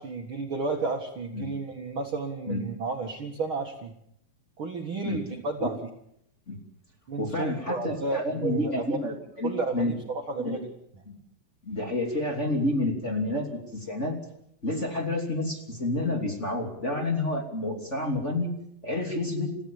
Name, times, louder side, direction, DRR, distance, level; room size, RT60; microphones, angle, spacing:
voice 1, 0.0-3.9 4.6-5.9 7.1-8.8 9.4-10.7, right 3 dB, 85° right, 2 dB, 1.1 m, -32 dB
voice 2, 7.2-9.9 10.4-10.6 11.1-11.2 11.6-14.2 14.6-18.5 18.8-19.5, left 2 dB, 20° left, 2 dB, 2.5 m, -29 dB
29.5 x 15.0 x 7.1 m, 0.75 s
omnidirectional pair, 5.3 m